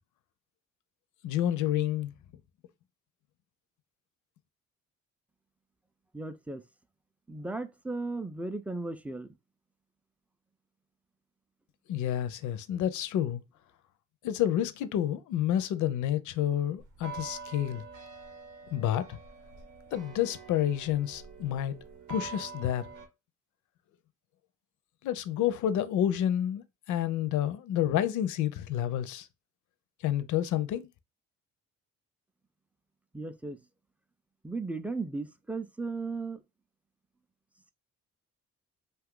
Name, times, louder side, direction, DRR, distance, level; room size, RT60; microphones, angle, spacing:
voice 1, 1.2-2.1 11.9-13.4 14.2-17.8 18.7-19.2 19.9-21.8 22.1-22.8 25.0-29.3 30.0-30.9, left 11 dB, 75° left, 0.5 m, -29 dB
voice 2, 6.1-6.6 7.3-9.3 33.1-33.6 34.4-36.4, right 3 dB, 5° right, 0.3 m, -36 dB
sound 1, 16.8-23.1, right 4 dB, 85° right, 0.8 m, -45 dB
2.6 x 2.4 x 3.6 m
cardioid pair, 90°, 30 cm